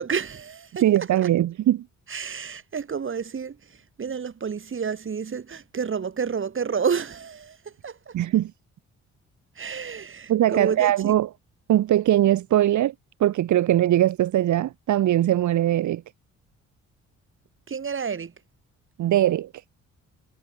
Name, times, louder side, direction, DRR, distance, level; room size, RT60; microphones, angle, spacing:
voice 1, 0.0-0.8 1.2-1.3 2.1-8.1 9.6-11.2 17.7-18.3, right 6 dB, 40° right, 5.7 m, -30 dB
voice 2, 0.8-1.8 8.1-8.5 10.3-11.3 11.7-12.9 13.2-16.0 19.0-19.5, right 13 dB, 70° right, 1.8 m, -21 dB
cardioid pair, 90°, 30 cm